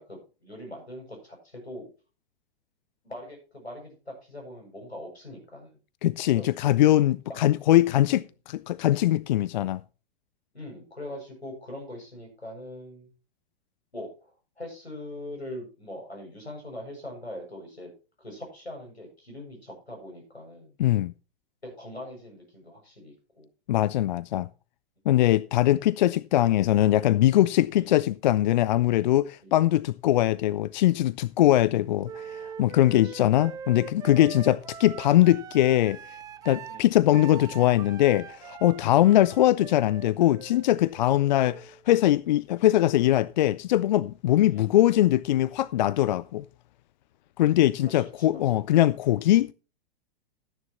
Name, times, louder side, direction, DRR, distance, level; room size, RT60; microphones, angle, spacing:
voice 1, 0.0-1.9 3.0-5.8 6.3-6.4 8.0-8.2 10.5-13.1 13.9-14.3 14.6-17.9 18.2-20.7 21.6-23.5 27.8-28.0 29.4-29.5 33.0-33.3 34.2-34.4 36.7-37.1 39.0-39.2 43.5-43.6 44.4-44.7 47.9-48.4, left 1 dB, 85° left, 7.3 m, -42 dB
voice 2, 6.0-9.8 20.8-21.1 23.7-24.5 25.1-36.0 36.5-46.4 47.4-49.5, left 14 dB, 45° left, 0.4 m, -22 dB
Wind instrument woodwind instrument, 32.0-41.8, right 7 dB, 10° right, 0.4 m, -42 dB
14.0 x 9.8 x 3.1 m
figure-of-eight pair, 100°, 31 cm